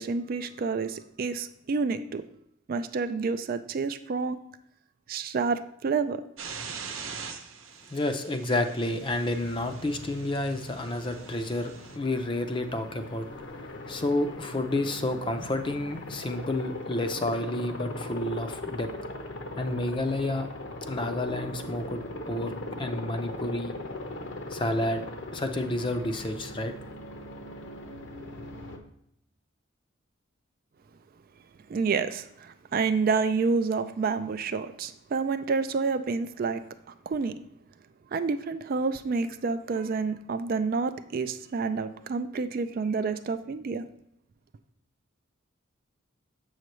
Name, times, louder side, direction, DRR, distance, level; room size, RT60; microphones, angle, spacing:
voice 1, 0.0-2.2 2.7-4.4 5.1-6.2 31.7-37.3 38.1-43.8, right 4 dB, 45° right, 10 dB, 0.3 m, -29 dB
sound 1, 6.4-12.0, right 6 dB, 75° right, 0.9 m, -43 dB
voice 2, 7.9-13.3 13.9-18.9 19.6-20.5 20.9-22.0 22.3-23.8 24.5-25.0 25.3-26.7, left 1 dB, 25° left, 7 dB, 0.5 m, -30 dB
Aircraft, 8.9-28.8, left 2 dB, 60° left, 0.8 m, -40 dB
7.5 x 6.5 x 3.1 m, 0.75 s
head